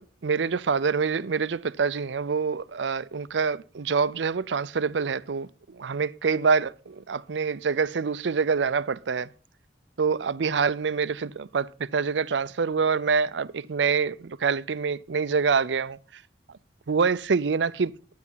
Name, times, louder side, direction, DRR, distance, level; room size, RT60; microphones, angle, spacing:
voice 1, 0.0-9.3 10.0-16.0 16.9-17.9, right 5 dB, 85° right, 0.5 m, -26 dB
12.0 x 9.5 x 5.6 m
head